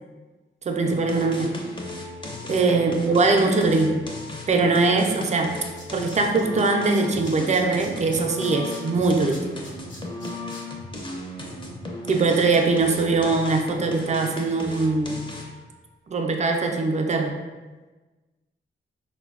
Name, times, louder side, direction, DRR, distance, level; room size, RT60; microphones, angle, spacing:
voice 1, 0.7-1.6 2.5-4.0 4.5-5.5 5.9-9.5 12.1-15.2 16.1-17.3, right 3 dB, 35° right, 3 dB, 0.4 m, -22 dB
sound 1, 0.9-15.6, left 1 dB, 25° left, 0.5 m, -35 dB
Tools, 5.2-5.3 5.5-6.7 6.9-10.6 11.0-11.1, left 1 dB, 60° left, 0.8 m, -45 dB
3.7 x 2.1 x 2.4 m, 1.2 s
cardioid pair, 75°, 21 cm